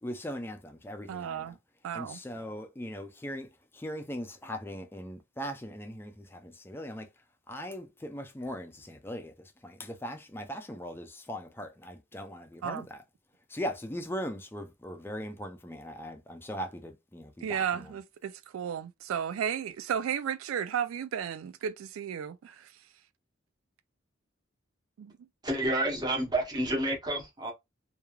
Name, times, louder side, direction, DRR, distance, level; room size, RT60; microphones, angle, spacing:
voice 1, 0.0-1.6 1.9-7.1 7.5-13.0 13.5-17.9, equal, 10° left, 0.4 m, -39 dB
voice 2, 1.1-1.6 1.8-2.2 12.6-12.9 17.4-22.7 25.0-25.1, right 8 dB, 85° right, 0.3 m, -34 dB
voice 3, 25.4-27.5, right 1 dB, 20° right, 0.8 m, -29 dB
3.1 x 2.3 x 2.3 m
head